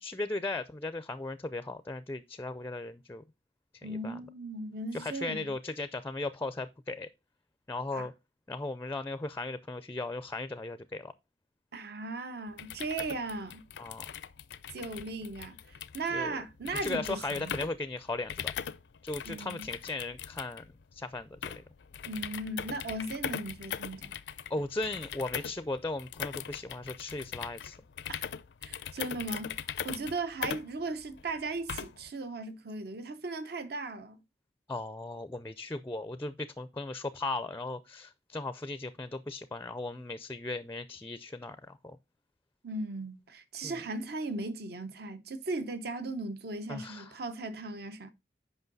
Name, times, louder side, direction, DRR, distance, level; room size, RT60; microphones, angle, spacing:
voice 1, 0.0-3.2 3.8-4.2 4.9-7.1 7.7-8.1 8.5-11.1 13.8-14.1 16.1-16.4 16.8-18.5 19.0-21.6 24.5-27.8 34.7-42.0 43.6-43.8 46.7-47.1, left 2 dB, 15° left, 0.4 m, -37 dB
voice 2, 3.8-5.5 7.9-8.1 11.7-13.6 14.7-15.6 15.9-17.6 19.2-19.7 22.1-24.1 28.1-28.2 28.6-34.2 42.6-48.1, right 2 dB, 60° right, 0.8 m, -37 dB
sound 1, 12.5-32.1, left 8 dB, 75° left, 0.5 m, -41 dB
8.0 x 5.4 x 3.9 m
head